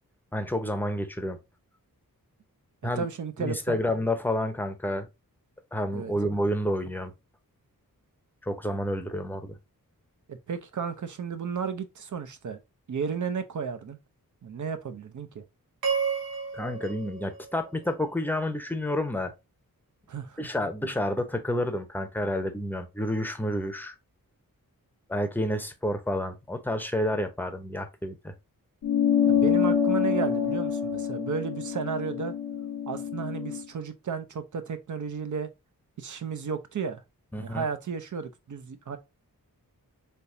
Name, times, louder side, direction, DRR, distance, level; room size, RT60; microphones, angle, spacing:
voice 1, 0.3-1.4 2.8-3.1 3.4-5.1 5.7-7.1 8.4-9.6 16.5-19.3 20.4-23.9 25.1-28.3 37.3-37.7, left 1 dB, 5° left, 0.7 m, -29 dB
voice 2, 2.8-3.8 5.9-6.1 10.3-12.6 12.9-14.0 14.4-15.4 20.1-20.5 29.3-32.4 32.9-35.5 36.0-37.0 37.4-39.0, right 6 dB, 55° right, 0.6 m, -33 dB
sound 1, 15.8-18.2, right 6 dB, 80° right, 1.1 m, -32 dB
sound 2, 28.8-33.6, left 8 dB, 70° left, 0.7 m, -26 dB
3.5 x 2.8 x 2.5 m
cardioid pair, 60°, 36 cm